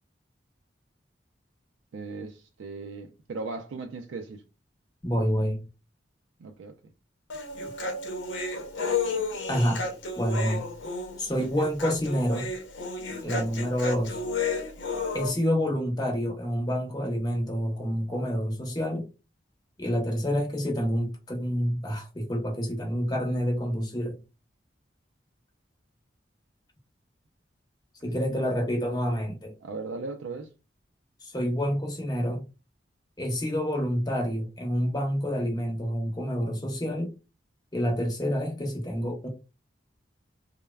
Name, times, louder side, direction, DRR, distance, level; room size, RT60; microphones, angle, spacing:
voice 1, 1.9-4.4 6.4-6.8 11.4-11.5 13.1-13.5 28.1-28.4 29.6-30.5, right 3 dB, 90° right, 0.4 m, -38 dB
voice 2, 5.0-5.6 9.5-9.8 10.2-10.6 11.2-12.5 13.2-14.2 15.1-19.1 19.8-24.2 28.0-29.5 31.2-32.4 33.2-37.1 37.7-39.3, equal, 20° left, 0.8 m, -28 dB
Human voice, 7.3-15.3, left 4 dB, 85° left, 0.7 m, -32 dB
3.2 x 2.1 x 2.2 m
head